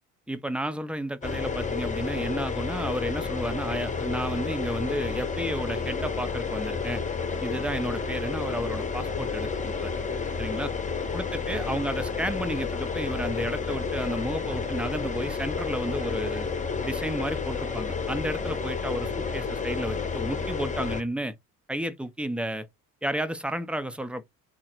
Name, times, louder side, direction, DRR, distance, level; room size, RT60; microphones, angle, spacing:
voice 1, 0.3-7.0 7.4-9.9 10.4-10.7 11.1-16.5 16.8-21.3 21.7-22.7 23.0-24.2, right 1 dB, 5° right, 0.6 m, -32 dB
sound 1, 1.2-21.0, left 5 dB, 15° left, 0.9 m, -31 dB
3.8 x 2.1 x 4.4 m
hypercardioid pair, 65°, 42 cm